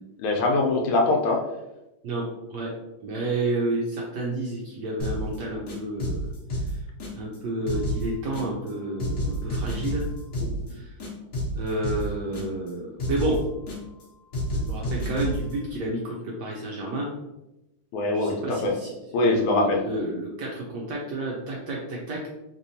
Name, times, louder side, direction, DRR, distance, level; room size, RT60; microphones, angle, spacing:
voice 1, 0.2-1.4 10.4-10.5 17.9-18.7 19.1-19.8, left 2 dB, 80° left, 0 dB, 1.4 m, -23 dB
voice 2, 2.0-2.7 3.0-6.3 7.1-10.0 10.7-10.9 11.5-13.4 14.5-17.1 18.1-22.3, right 2 dB, 75° right, -3 dB, 1.0 m, -30 dB
sound 1, 5.0-5.4 5.7-7.4 7.7-8.7 9.0-10.7 11.0-12.7 13.0-14.0 14.3-15.5, equal, 60° left, 0.9 m, -30 dB
3.3 x 3.0 x 2.6 m, 0.96 s
omnidirectional pair, 2.3 m